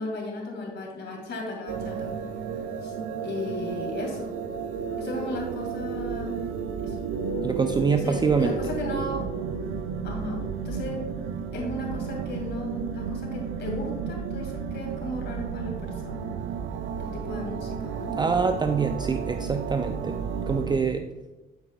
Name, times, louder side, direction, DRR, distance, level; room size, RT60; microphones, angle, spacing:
voice 1, 0.0-2.2 2.8-2.9 3.2-4.3 5.0-6.4 6.8-7.0 8.0-9.2 10.0-11.0 11.5-16.3 17.0-18.2, left 1 dB, 60° left, -1 dB, 2.3 m, -35 dB
sound 1, 1.7-20.8, right 6 dB, 85° right, 0.6 m, -33 dB
sound 2, 7.1-10.6, right 3 dB, 70° right, 1.5 m, -34 dB
voice 2, 7.4-8.5 18.2-20.2 20.5-21.1, right 5 dB, 20° right, 7 dB, 0.4 m, -25 dB
9.6 x 8.1 x 2.4 m, 1.1 s
cardioid pair, 90°, 20 cm